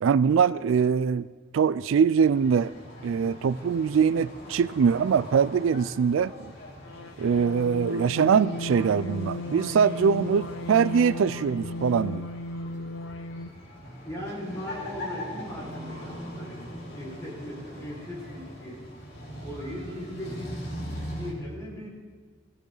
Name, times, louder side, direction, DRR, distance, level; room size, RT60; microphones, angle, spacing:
voice 1, 0.0-1.3 1.5-2.7 3.0-6.3 7.2-12.3, right 6 dB, 70° right, 17 dB, 0.3 m, -23 dB
sound 1, 2.2-21.3, equal, 55° left, 4.0 m, -41 dB
sound 2, 6.8-13.7, left 1 dB, 75° left, 0.7 m, -36 dB
voice 2, 14.0-16.6 16.9-18.8 19.4-21.9, equal, 15° left, -5 dB, 5.2 m, -39 dB
18.5 x 16.0 x 4.0 m, 1.5 s
head